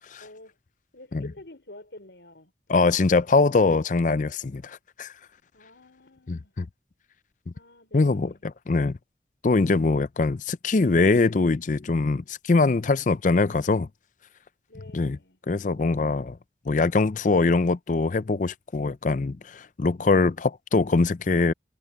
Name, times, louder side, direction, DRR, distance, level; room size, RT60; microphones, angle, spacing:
voice 1, 0.2-0.6 0.9-2.5 5.5-6.5 7.5-8.4 14.7-15.4, left 1 dB, 70° left, 4.6 m, -48 dB
voice 2, 2.7-5.1 6.3-6.6 7.9-8.3 8.7-9.0 9.4-13.9 14.9-15.2 15.5-16.4 16.7-21.5, left 3 dB, 40° left, 0.5 m, -22 dB
head